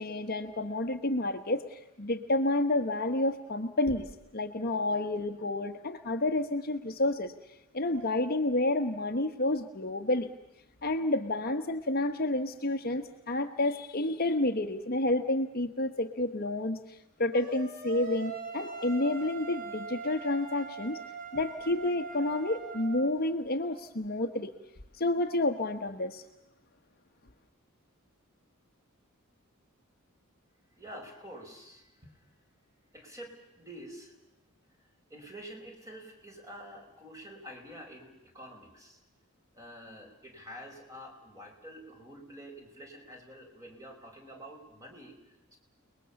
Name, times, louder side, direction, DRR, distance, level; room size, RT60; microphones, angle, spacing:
voice 1, 0.0-4.1 4.3-7.3 7.7-10.3 10.8-21.0 21.3-24.5 24.9-26.2, left 2 dB, 45° left, 7 dB, 1.2 m, -30 dB
sound 1, 17.3-23.1, right 5 dB, 40° right, 4.2 m, -42 dB
voice 2, 30.8-32.1 32.9-34.1 34.8-39.0 39.5-45.6, equal, 15° right, 2 dB, 5.0 m, -48 dB
29.5 x 20.5 x 7.1 m, 0.93 s
head